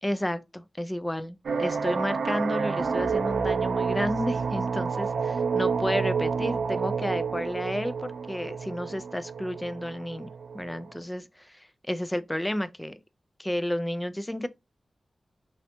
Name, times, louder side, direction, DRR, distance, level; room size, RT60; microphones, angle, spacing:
voice 1, 0.0-10.3 10.5-13.0 13.4-14.5, equal, 10° left, 0.3 m, -31 dB
sound 1, 1.4-11.0, right 5 dB, 85° right, 0.3 m, -29 dB
3.2 x 2.6 x 2.7 m
wide cardioid pair, 140°, 0 cm